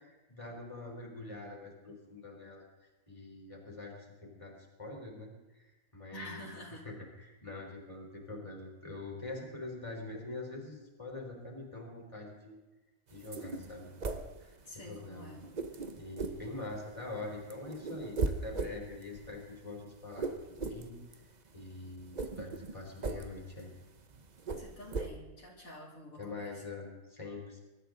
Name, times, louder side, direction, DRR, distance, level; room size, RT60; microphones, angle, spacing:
voice 1, 0.0-2.6 3.1-4.5 4.8-5.3 5.9-12.5 13.1-15.3 16.0-21.0 21.5-23.7 26.2-27.6, left 2 dB, 20° left, -1 dB, 4.0 m, -44 dB
voice 2, 6.1-6.9 14.6-15.5 24.6-26.5, left 1 dB, 85° left, -3 dB, 3.5 m, -48 dB
sound 1, 13.1-15.0 15.3-17.1 17.4-25.1, right 3 dB, 35° right, 1.0 m, -38 dB
23.0 x 13.0 x 3.9 m, 1.1 s
omnidirectional pair, 1.4 m